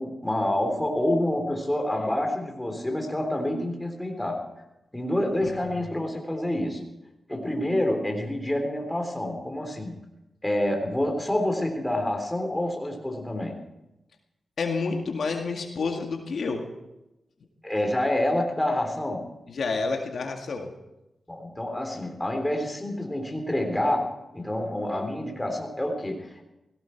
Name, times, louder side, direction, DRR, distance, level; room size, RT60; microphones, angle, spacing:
voice 1, 0.0-4.4 4.9-6.8 7.3-10.0 10.4-13.6 17.6-19.3 21.3-26.4, left 1 dB, 10° left, 3 dB, 3.7 m, -27 dB
voice 2, 14.6-16.6 19.5-20.7, left 4 dB, 70° left, 3 dB, 2.0 m, -29 dB
17.5 x 16.0 x 4.6 m, 0.94 s
cardioid pair, 55°, 0 cm